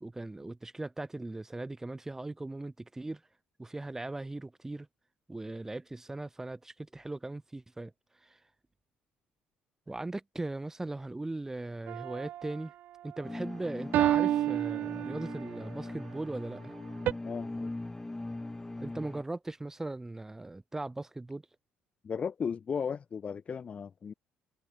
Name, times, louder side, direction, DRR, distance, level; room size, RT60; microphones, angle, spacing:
voice 1, 0.0-3.2 3.6-4.9 5.3-7.9 8.2-8.4 9.9-12.7 13.0-16.8 18.8-21.4, right 2 dB, 15° right, 1.8 m, -39 dB
sound 1, 11.9-12.6 13.9-15.5 17.1-17.2, right 12 dB, 70° right, 1.5 m, -29 dB
sound 2, 13.2-19.2, left 2 dB, 15° left, 1.1 m, -41 dB
voice 2, 17.2-17.7 22.0-24.1, left 6 dB, 40° left, 1.7 m, -35 dB
supercardioid pair, 85°, 3 cm